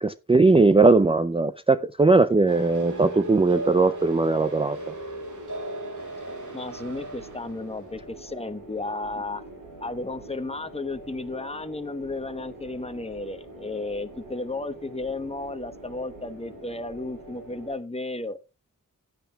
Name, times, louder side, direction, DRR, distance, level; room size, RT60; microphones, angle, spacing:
voice 1, 0.0-4.8, right 3 dB, 15° right, 0.4 m, -19 dB
sound 1, 2.4-17.8, right 1 dB, 85° right, 3.9 m, -45 dB
sound 2, 2.5-7.8, right 1 dB, 65° right, 6.2 m, -36 dB
voice 2, 6.5-9.4 9.8-18.4, left 2 dB, 20° left, 1.0 m, -33 dB
16.0 x 9.2 x 2.3 m
wide cardioid pair, 65°, 33 cm